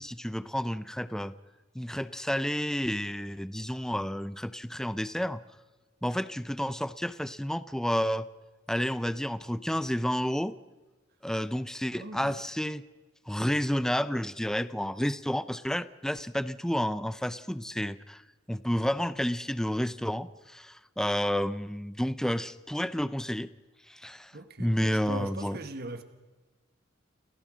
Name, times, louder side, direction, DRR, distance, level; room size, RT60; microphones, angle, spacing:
voice 1, 0.0-1.3 1.7-5.4 6.0-8.3 8.7-10.5 11.2-12.8 13.3-18.2 18.5-23.5 23.9-24.3 24.6-25.6, equal, 5° left, 14 dB, 0.5 m, -30 dB
voice 2, 11.9-12.4 24.3-26.0, right 2 dB, 55° right, 8 dB, 1.3 m, -40 dB
29.0 x 14.5 x 6.2 m, 1.2 s
head